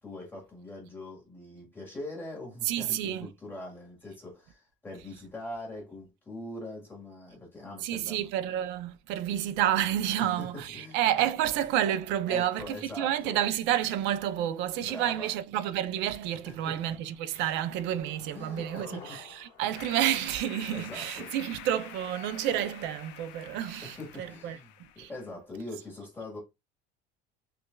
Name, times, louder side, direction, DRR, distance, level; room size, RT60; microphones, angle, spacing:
voice 1, 0.0-8.3 10.2-11.0 12.3-13.4 14.8-15.3 16.4-16.8 18.3-19.2 19.6-19.7 20.7-21.3 23.8-26.4, left 1 dB, 10° left, 1.6 m, -42 dB
voice 2, 2.7-3.3 7.8-24.6 25.0-25.1, right 11 dB, 60° right, 0.5 m, -30 dB
Skateboard, 15.8-16.1 16.4-21.0, left 5 dB, 35° left, 1.2 m, -53 dB
sound 1, 19.7-25.3, left 12 dB, 60° left, 0.5 m, -48 dB
6.1 x 2.5 x 2.2 m
cardioid pair, 170°, 21 cm